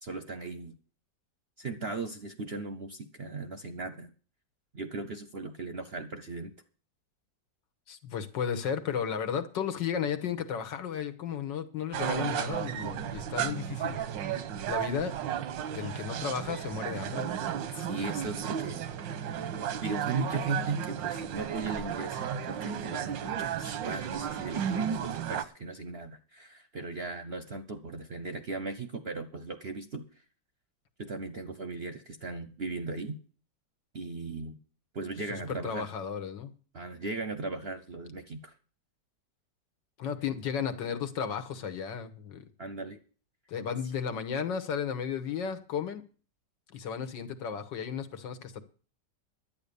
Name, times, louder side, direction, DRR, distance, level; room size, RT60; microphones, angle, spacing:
voice 1, 0.0-0.8 1.6-4.1 4.7-6.5 17.7-18.9 19.8-30.0 31.0-33.2 33.9-34.6 34.9-35.9 36.7-38.5 42.6-43.0, right 3 dB, 50° right, 0.8 m, -37 dB
voice 2, 7.9-14.0 14.7-15.2 15.7-17.3 35.5-36.5 40.0-42.4 43.5-46.0 46.7-48.6, left 7 dB, 80° left, 1.8 m, -34 dB
sound 1, 11.9-25.4, right 9 dB, 90° right, 1.6 m, -34 dB
11.0 x 8.8 x 6.8 m
omnidirectional pair, 2.0 m